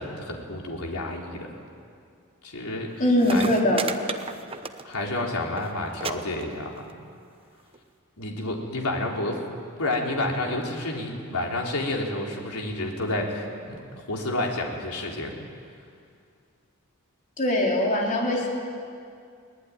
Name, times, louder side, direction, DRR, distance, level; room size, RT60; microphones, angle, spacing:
voice 1, 0.0-1.5 2.4-2.9 3.3-3.5 4.8-6.9 8.2-9.4 9.8-15.4, left 2 dB, 90° left, 0 dB, 3.7 m, -30 dB
sound 1, 2.9-3.0 3.2-5.1 5.4-5.7 6.0-6.1 6.4-6.9 7.7-7.8, right 5 dB, 25° right, 0.9 m, -33 dB
voice 2, 3.0-3.9 17.4-18.5, left 1 dB, 35° left, -2 dB, 4.1 m, -22 dB
23.0 x 19.0 x 9.8 m, 2.3 s
head